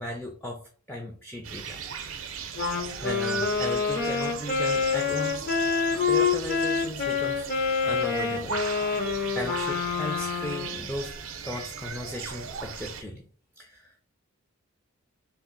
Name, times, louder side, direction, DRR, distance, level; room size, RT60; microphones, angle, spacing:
voice 1, 0.0-1.8 3.0-5.5 6.1-7.5 7.8-8.6 9.3-11.1 11.4-13.2 13.6-13.9, left 1 dB, 5° left, 0 dB, 0.4 m, -36 dB
sound 1, 1.4-13.0, right 7 dB, 70° right, 0.5 m, -38 dB
Wind instrument woodwind instrument, 2.5-10.8, left 5 dB, 45° left, 0.7 m, -27 dB
3.4 x 2.4 x 3.8 m, 0.41 s
head